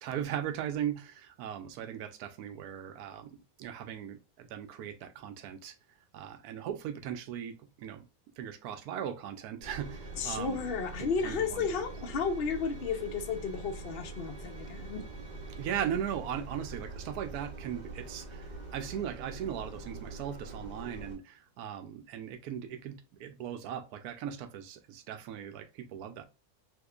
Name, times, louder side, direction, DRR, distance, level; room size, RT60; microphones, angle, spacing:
voice 1, 0.0-5.7 6.1-8.0 8.4-10.7 11.0-11.7 15.5-26.2, right 9 dB, 80° right, 1.1 m, -38 dB
Engine, 9.6-21.2, right 2 dB, 40° right, 0.8 m, -44 dB
voice 2, 10.1-15.1, left 5 dB, 55° left, 0.7 m, -33 dB
3.6 x 3.0 x 2.3 m
omnidirectional pair, 1.6 m